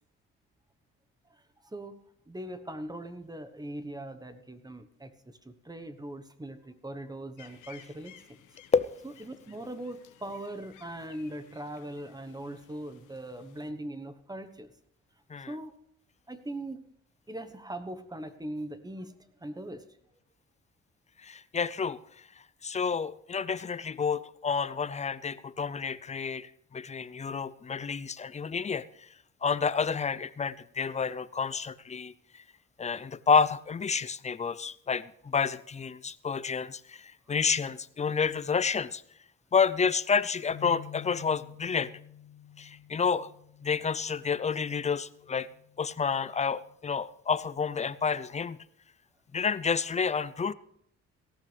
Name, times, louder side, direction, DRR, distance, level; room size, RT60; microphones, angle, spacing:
voice 1, 1.6-2.0 2.3-8.4 9.2-14.7 15.5-15.7 16.3-16.8 17.3-19.1 19.4-19.8, right 1 dB, 15° right, 10 dB, 1.1 m, -40 dB
sound 1, 7.4-13.7, left 10 dB, 80° left, 1.4 m, -57 dB
voice 2, 21.2-22.0 22.6-28.8 29.4-32.1 32.8-39.0 39.5-41.9 42.6-43.3 43.6-45.5 45.8-48.6 49.3-50.5, left 6 dB, 25° left, 17 dB, 0.5 m, -29 dB
sound 2, 40.5-46.8, left 10 dB, 50° left, 0.8 m, -50 dB
18.0 x 14.0 x 3.4 m, 0.69 s
cardioid pair, 90°, 30 cm